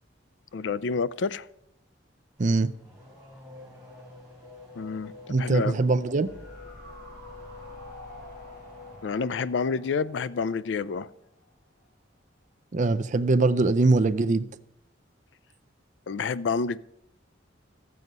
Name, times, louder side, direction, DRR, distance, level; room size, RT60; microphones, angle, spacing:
voice 1, 0.5-1.5 4.8-5.8 9.0-11.1 16.1-16.8, left 5 dB, 65° left, 0.4 m, -29 dB
Race car auto racing / Accelerating revving vroom, 2.4-9.6, left 3 dB, ahead, 4.8 m, -48 dB
voice 2, 5.3-6.3 12.7-14.5, right 3 dB, 40° right, 0.5 m, -22 dB
sound 1, 6.3-11.5 11.8-11.9, equal, 45° left, 3.7 m, -48 dB
13.5 x 7.8 x 5.3 m
head